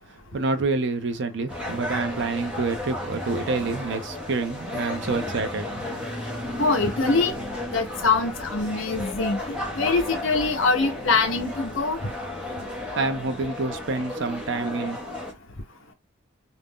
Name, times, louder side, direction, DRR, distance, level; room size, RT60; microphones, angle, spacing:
voice 1, 0.3-5.7 12.9-15.0, right 3 dB, 60° right, 0.5 m, -27 dB
sound 1, 1.5-15.3, left 1 dB, 5° right, 0.6 m, -33 dB
voice 2, 6.6-7.3 7.7-12.0, left 4 dB, 65° left, 0.7 m, -23 dB
2.5 x 2.1 x 3.5 m
head